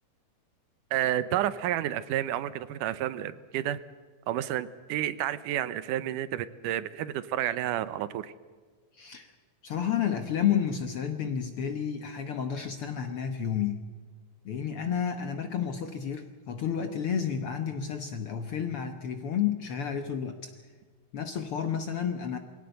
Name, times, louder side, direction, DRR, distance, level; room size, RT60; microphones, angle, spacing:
voice 1, 0.9-3.8 4.3-8.3, right 12 dB, 80° right, 15 dB, 2.3 m, -30 dB
voice 2, 8.9-9.3 9.6-13.8 14.4-20.5 21.1-22.4, left 8 dB, 60° left, 7 dB, 1.5 m, -31 dB
22.0 x 17.5 x 7.8 m, 1.5 s
omnidirectional pair, 3.8 m